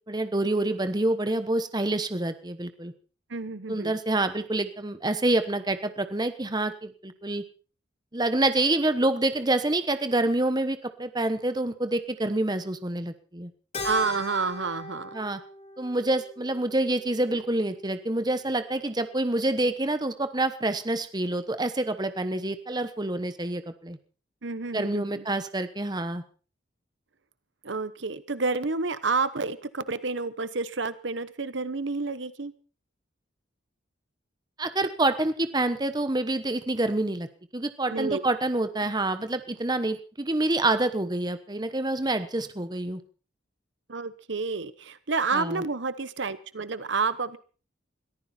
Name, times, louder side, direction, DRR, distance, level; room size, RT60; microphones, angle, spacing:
voice 1, 0.1-2.9 3.7-7.4 8.1-13.5 15.1-15.4 15.8-24.0 24.7-26.2 34.6-37.3 37.5-43.0 45.3-45.6, right 2 dB, 20° right, 10 dB, 1.1 m, -27 dB
voice 2, 3.3-3.9 13.8-15.1 24.4-25.2 27.6-32.5 37.9-38.2 43.9-47.4, right 4 dB, 65° right, 15 dB, 1.0 m, -29 dB
Keyboard (musical), 13.7-18.3, left 2 dB, 35° left, 3.8 m, -40 dB
21.5 x 14.5 x 4.3 m, 0.38 s
head